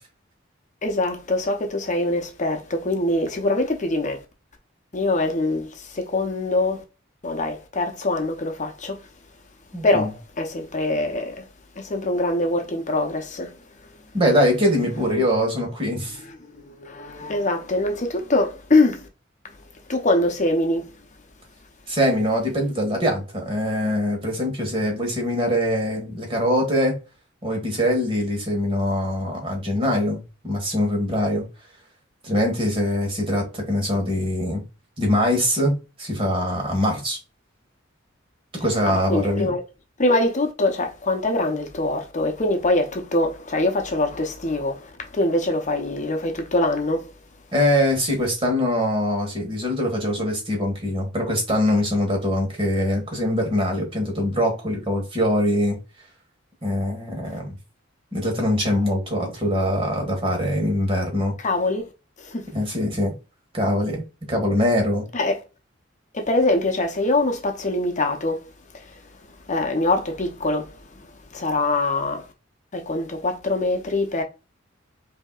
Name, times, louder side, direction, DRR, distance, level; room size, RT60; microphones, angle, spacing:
voice 1, 0.8-4.2 4.9-6.8 7.2-9.1 9.8-11.5 11.8-14.1 15.2-15.3 16.1-19.1 19.9-20.9 38.8-39.6 40.0-47.1 61.4-61.9 62.2-62.5 65.1-65.4 66.1-68.5 68.7-69.0 69.5-72.3 72.7-74.2, left 2 dB, 40° left, 0.7 m, -24 dB
voice 2, 9.7-10.1 14.1-16.2 21.9-26.9 27.4-31.4 32.2-34.6 35.0-37.2 38.5-39.5 47.5-55.8 56.6-57.5 58.1-61.3 62.5-63.1 63.5-65.0, left 1 dB, 30° right, 1.6 m, -23 dB
5.2 x 2.8 x 2.3 m
head